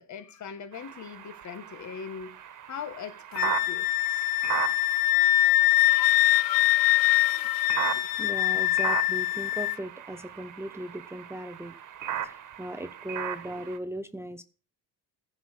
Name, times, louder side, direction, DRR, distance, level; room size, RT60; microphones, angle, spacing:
voice 1, 0.0-2.4 2.7-3.9 7.3-7.5, left 7 dB, 55° left, 1.4 m, -40 dB
sound 1, 0.7-13.8, right 9 dB, 60° right, 1.4 m, -37 dB
Wind instrument woodwind instrument, 3.4-9.8, left 16 dB, 75° left, 0.5 m, -23 dB
voice 2, 8.0-11.7 12.2-14.4, right 1 dB, 10° right, 0.6 m, -38 dB
15.0 x 5.4 x 8.2 m
cardioid pair, 160°, 34 cm